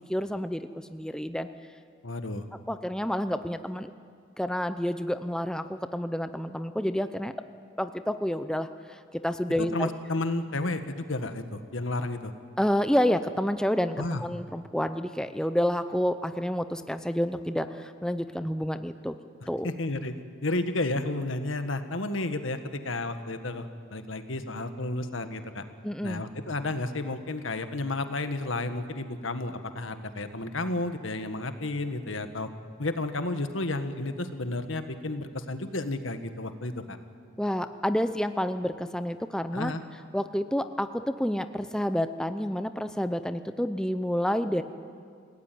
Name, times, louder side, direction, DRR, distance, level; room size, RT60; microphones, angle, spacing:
voice 1, 0.1-1.5 2.7-3.9 4.4-7.3 7.8-9.9 12.6-19.2 19.5-19.7 25.8-26.2 37.4-39.7 40.1-44.6, equal, 5° left, 10 dB, 0.6 m, -29 dB
voice 2, 2.0-2.5 9.7-12.3 14.0-14.2 19.6-20.1 20.4-23.7 23.9-25.6 26.0-32.5 32.8-37.0 39.5-39.8, left 2 dB, 85° left, 8 dB, 1.6 m, -32 dB
28.5 x 17.5 x 9.4 m, 2.2 s
head